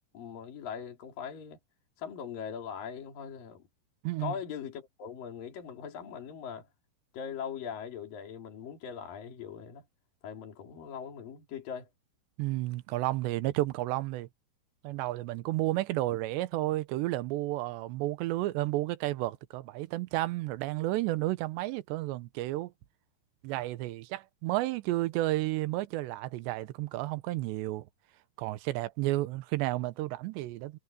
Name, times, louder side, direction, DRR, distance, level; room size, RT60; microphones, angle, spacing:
voice 1, 0.1-1.6 2.0-3.7 4.2-6.7 7.1-9.8 10.2-11.9, left 7 dB, 55° left, 5.0 m, -40 dB
voice 2, 12.4-14.3 14.8-22.7 23.4-27.9 28.4-30.8, right 17 dB, 85° right, 3.1 m, -32 dB
omnidirectional pair, 4.9 m